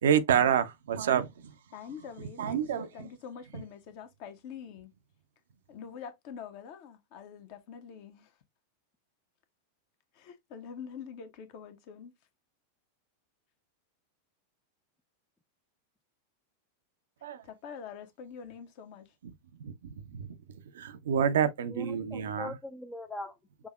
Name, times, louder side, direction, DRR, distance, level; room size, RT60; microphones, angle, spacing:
voice 1, 0.0-1.3 2.4-2.9 17.2-17.4 19.6-20.4 20.7-22.5, right 8 dB, 60° right, 0.6 m, -28 dB
voice 2, 1.7-4.9 5.7-8.4 10.1-12.1 17.4-19.1, left 7 dB, 45° left, 1.0 m, -45 dB
voice 3, 21.7-23.7, left 2 dB, 10° left, 0.5 m, -42 dB
6.0 x 2.7 x 2.3 m
figure-of-eight pair, 90°, 0 cm